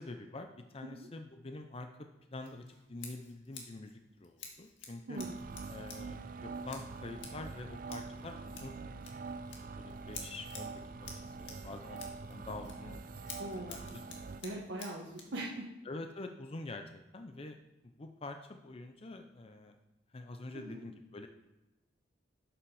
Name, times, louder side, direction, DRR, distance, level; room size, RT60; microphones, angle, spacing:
voice 1, 0.0-5.2 5.7-14.6 15.8-17.6 18.0-19.8 20.1-21.3, left 2 dB, 30° left, 6 dB, 0.6 m, -47 dB
Scissors, 2.4-15.4, left 5 dB, 75° left, 1.9 m, -52 dB
sound 1, 5.2-14.4, right 4 dB, 50° right, 0.5 m, -44 dB
voice 2, 13.4-13.9 14.4-15.7 20.5-20.8, right 1 dB, 80° right, -4 dB, 1.4 m, -41 dB
12.0 x 5.9 x 4.9 m, 1.0 s
head